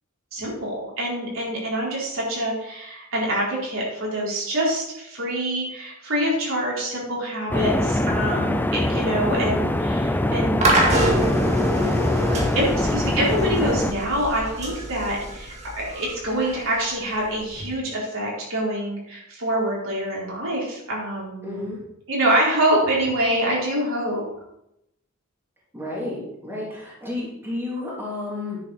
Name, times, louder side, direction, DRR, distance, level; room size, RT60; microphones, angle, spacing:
voice 1, 0.3-10.6 12.5-21.5 22.1-24.2, right 1 dB, 70° right, -5 dB, 4.4 m, -25 dB
sound 1, 7.5-13.9, left 1 dB, 10° left, 0.5 m, -23 dB
sound 2, 10.6-17.7, right 1 dB, 35° right, 2.1 m, -26 dB
voice 2, 21.4-21.8 25.7-28.6, left 2 dB, 10° right, -6 dB, 3.2 m, -31 dB
10.0 x 7.9 x 4.3 m, 0.81 s
head